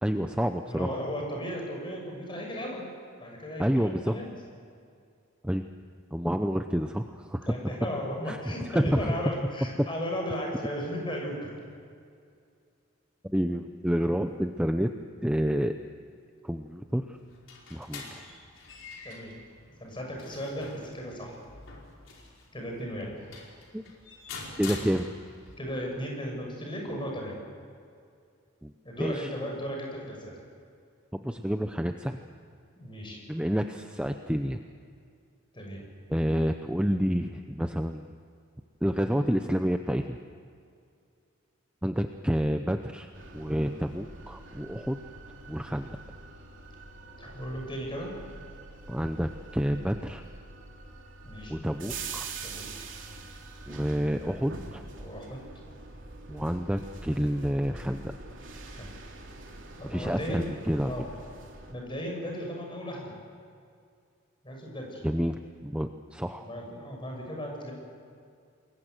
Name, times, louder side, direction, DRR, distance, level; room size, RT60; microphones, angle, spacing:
voice 1, 0.0-1.0 3.6-4.2 5.4-5.7 6.1-7.6 8.3-8.4 8.7-9.1 9.8-9.9 13.3-14.9 15.2-15.8 16.4-17.1 17.7-18.2 23.7-23.8 24.6-25.1 28.6-28.7 29.0-29.3 31.1-32.2 33.3-34.6 36.1-38.1 38.8-40.2 41.8-45.0 45.5-45.9 48.9-50.2 51.5-52.3 53.7-54.8 56.3-58.1 59.8-60.9 65.0-66.5, equal, 5° right, 6 dB, 0.7 m, -29 dB
voice 2, 0.6-2.9 3.2-4.2 7.4-11.4 19.0-19.3 19.8-21.4 22.5-23.3 25.6-27.3 28.8-30.4 32.8-33.2 35.5-35.8 47.2-48.1 51.2-51.7 52.4-52.7 55.0-55.7 58.7-58.9 59.8-60.6 60.8-61.1 61.7-63.1 64.4-65.1 66.4-67.7, equal, 25° left, 0 dB, 6.7 m, -36 dB
sound 1, 17.1-25.5, left 3 dB, 75° left, 4.9 m, -45 dB
sound 2, 43.1-61.7, right 3 dB, 65° right, 3.5 m, -44 dB
28.5 x 22.0 x 8.1 m, 2.3 s
head